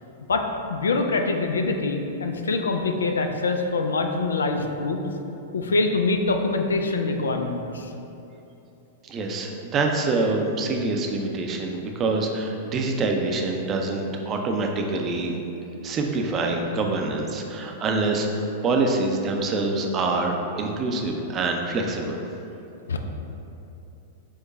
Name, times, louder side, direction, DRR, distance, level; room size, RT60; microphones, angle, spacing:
voice 1, 0.3-5.0 5.5-7.9 22.9-23.0, left 3 dB, 80° left, 5 dB, 0.3 m, -24 dB
voice 2, 9.0-15.4 15.8-22.2, right 3 dB, 30° right, 2 dB, 0.5 m, -25 dB
4.7 x 2.2 x 4.1 m, 2.9 s
hypercardioid pair, 100°, 0 cm